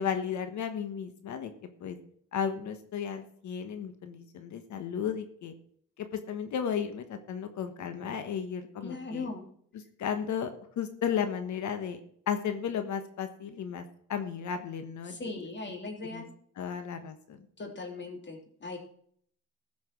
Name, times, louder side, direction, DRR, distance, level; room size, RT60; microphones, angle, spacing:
voice 1, 0.0-1.5 1.8-2.0 2.3-5.5 6.3-9.3 10.0-10.5 10.8-12.0 12.3-15.2 16.1-16.2 16.6-17.4, left 7 dB, 70° left, 8 dB, 1.4 m, -34 dB
voice 2, 8.8-9.4 15.0-16.3 17.6-18.8, left 3 dB, 35° left, 2 dB, 3.2 m, -39 dB
15.0 x 6.1 x 6.0 m, 0.62 s
cardioid pair, 90°, 30 cm